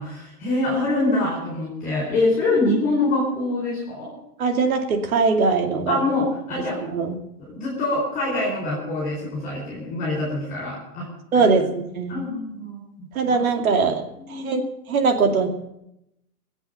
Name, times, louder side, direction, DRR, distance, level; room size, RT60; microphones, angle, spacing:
voice 1, 0.0-4.1 5.9-6.8 7.4-11.1 11.4-11.5 12.1-12.8 13.3-13.4 14.2-14.6, left 2 dB, 15° left, -4 dB, 4.6 m, -25 dB
voice 2, 4.4-6.0 6.9-7.2 11.3-12.2 13.1-14.0 14.3-14.6 14.9-15.5, right 4 dB, 60° right, 5 dB, 2.6 m, -21 dB
21.5 x 8.0 x 6.9 m, 0.81 s
hypercardioid pair, 160°, 46 cm